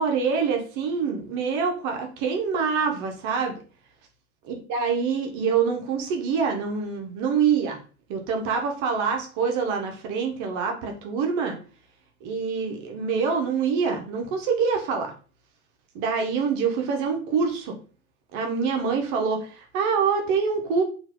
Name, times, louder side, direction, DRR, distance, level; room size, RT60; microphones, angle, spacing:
voice 1, 0.0-3.5 4.7-7.8 8.1-11.6 12.2-15.1 15.9-17.7 18.3-20.8, right 5 dB, 40° right, 2 dB, 1.2 m, -25 dB
4.5 x 2.9 x 3.7 m, 0.37 s
figure-of-eight pair, 80°, 43 cm